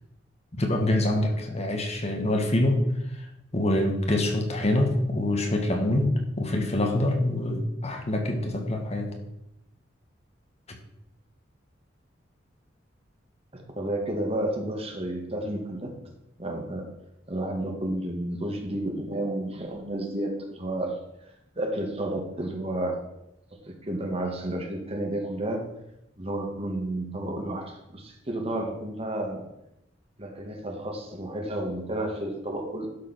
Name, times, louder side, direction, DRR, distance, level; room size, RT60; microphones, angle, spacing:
voice 1, 0.5-2.8 3.1-3.3 3.5-9.1 10.7-10.8, left 1 dB, 35° left, 3 dB, 1.5 m, -25 dB
voice 2, 13.5-15.9 16.4-16.9 17.3-21.0 21.6-23.0 23.7-25.6 26.2-29.5 30.2-32.9, right 1 dB, 35° right, 2 dB, 1.9 m, -31 dB
11.5 x 5.1 x 6.2 m, 0.85 s
head